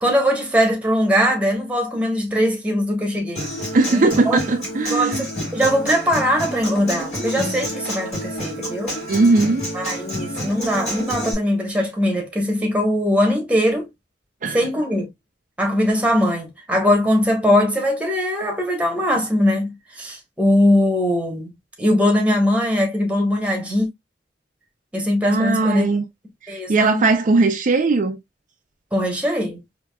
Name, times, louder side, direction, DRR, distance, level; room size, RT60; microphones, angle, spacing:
voice 1, 0.0-3.5 3.9-4.4 4.9-9.0 9.7-13.9 14.5-15.1 15.6-21.5 21.8-23.9 24.9-25.8 26.5-27.0 28.9-29.6, equal, 10° right, 1.1 m, -20 dB
Human voice / Acoustic guitar, 3.3-11.3, equal, 40° left, 3.0 m, -29 dB
voice 2, 3.7-5.3 9.1-9.6 14.4-14.6 25.2-26.0 26.4-28.2, right 3 dB, 45° right, 0.5 m, -19 dB
4.7 x 2.8 x 2.2 m
head